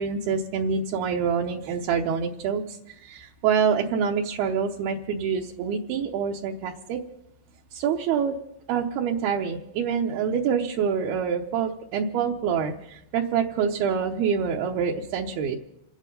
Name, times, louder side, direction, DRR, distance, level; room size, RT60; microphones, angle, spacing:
voice 1, 0.0-7.0 7.7-8.4 8.7-15.6, right 7 dB, 80° right, 0 dB, 2.2 m, -26 dB
28.0 x 9.6 x 5.3 m, 0.80 s
omnidirectional pair, 5.6 m